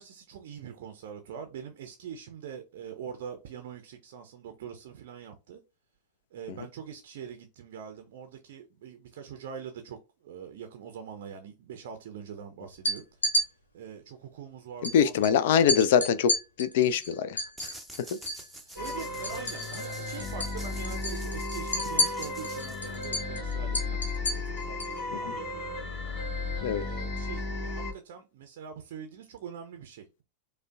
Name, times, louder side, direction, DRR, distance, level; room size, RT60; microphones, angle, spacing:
voice 1, 0.0-5.6 6.3-10.0 10.2-13.4 13.7-15.8 18.6-26.3 26.7-30.2, right 7 dB, 55° right, 0.5 m, -43 dB
sound 1, 12.7-13.5 14.8-14.9 15.2-15.3 15.7-18.5 18.7-19.9 20.2-20.5 20.8-25.0, left 1 dB, 75° left, 0.7 m, -30 dB
voice 2, 14.8-18.1 25.1-25.3 26.6-26.8, left 8 dB, 55° left, 0.3 m, -25 dB
sound 2, 17.6-23.3, right 1 dB, ahead, 0.6 m, -48 dB
sound 3, 18.8-27.9, left 3 dB, 30° left, 1.4 m, -34 dB
4.9 x 2.1 x 2.3 m
figure-of-eight pair, 90°, 0 cm